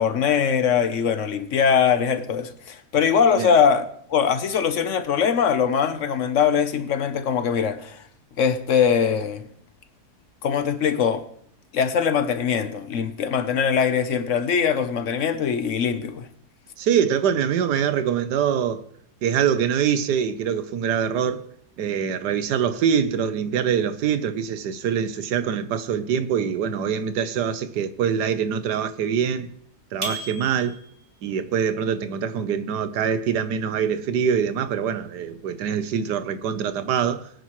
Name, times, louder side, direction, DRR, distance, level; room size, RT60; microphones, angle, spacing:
voice 1, 0.0-8.0 8.4-9.4 10.4-11.2 11.7-16.3, left 7 dB, 55° left, 1.1 m, -22 dB
voice 2, 16.8-18.8 19.2-21.4 21.8-29.5 29.9-30.7 31.2-37.3, right 8 dB, 80° right, 1.4 m, -24 dB
sound 1, 30.0-31.1, right 2 dB, 25° right, 2.0 m, -34 dB
22.0 x 9.4 x 3.1 m
omnidirectional pair, 1.8 m